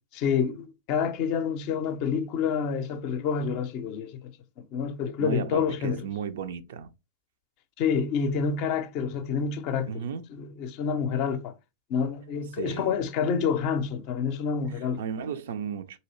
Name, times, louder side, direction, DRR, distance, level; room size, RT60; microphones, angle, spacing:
voice 1, 0.1-4.2 4.6-6.0 7.8-10.0 10.3-11.5 11.9-15.0, left 6 dB, 45° left, 0.5 m, -28 dB
voice 2, 5.2-6.9 9.9-10.3 12.5-13.0 14.7-16.0, right 7 dB, 60° right, 0.4 m, -34 dB
4.1 x 2.7 x 3.0 m
figure-of-eight pair, 90°, 0 cm